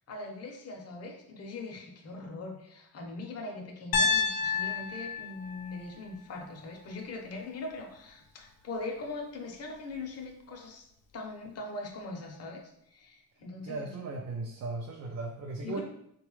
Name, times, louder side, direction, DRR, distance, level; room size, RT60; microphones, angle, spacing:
voice 1, 0.1-10.9 11.1-12.6 12.9-13.9 15.6-15.8, left 3 dB, 45° left, 2 dB, 0.7 m, -41 dB
Piano, 3.9-8.0, left 5 dB, 85° left, 0.5 m, -32 dB
voice 2, 13.6-15.8, right 3 dB, 55° right, 1 dB, 0.4 m, -37 dB
4.0 x 2.3 x 3.1 m, 0.75 s
wide cardioid pair, 165°, 34 cm